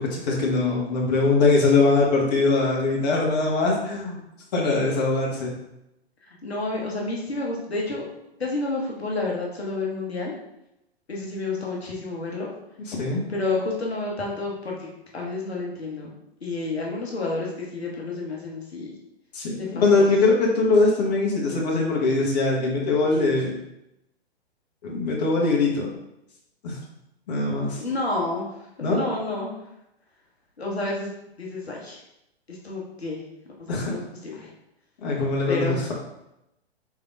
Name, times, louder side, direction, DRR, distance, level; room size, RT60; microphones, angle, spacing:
voice 1, 0.0-4.2 4.5-5.5 12.8-13.2 19.3-23.5 24.8-25.9 26.6-26.8 27.3-27.8 28.8-29.0 33.7-33.9 35.0-35.9, left 3 dB, 40° left, -3 dB, 1.0 m, -22 dB
voice 2, 6.4-8.0 8.4-10.3 11.1-12.5 13.3-14.8 15.1-16.1 16.4-18.9 19.5-20.1 27.5-28.5 28.9-29.5 30.6-31.1 31.4-32.0 32.6-33.2 33.7-34.5 35.5-35.9, left 3 dB, 75° left, -2 dB, 0.9 m, -30 dB
4.4 x 3.3 x 2.4 m, 0.86 s
figure-of-eight pair, 110°, 31 cm